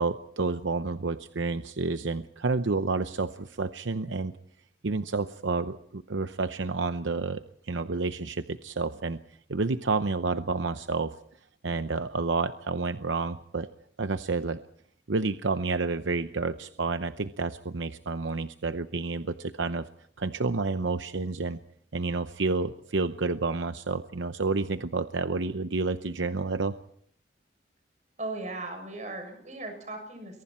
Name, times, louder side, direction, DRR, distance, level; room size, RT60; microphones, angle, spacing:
voice 1, 0.0-4.3 4.8-9.2 9.5-11.1 11.6-13.7 14.0-14.6 15.1-19.9 20.2-21.6 21.9-26.7, right 3 dB, 90° right, 10 dB, 0.8 m, -29 dB
voice 2, 28.2-30.4, right 2 dB, 40° right, 5 dB, 7.0 m, -37 dB
29.0 x 23.0 x 4.4 m, 0.62 s
head